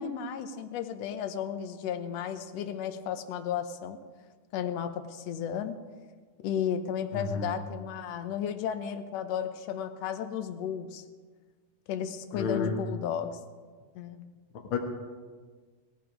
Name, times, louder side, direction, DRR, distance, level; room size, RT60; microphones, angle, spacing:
voice 1, 0.0-4.0 4.5-5.8 6.4-11.0 11.9-13.4 13.9-14.3, left 8 dB, 70° left, 8 dB, 1.7 m, -34 dB
voice 2, 7.1-7.5 12.3-12.8 14.7-14.8, left 5 dB, 50° left, 1 dB, 2.0 m, -30 dB
18.0 x 14.0 x 4.9 m, 1.5 s
omnidirectional pair, 3.8 m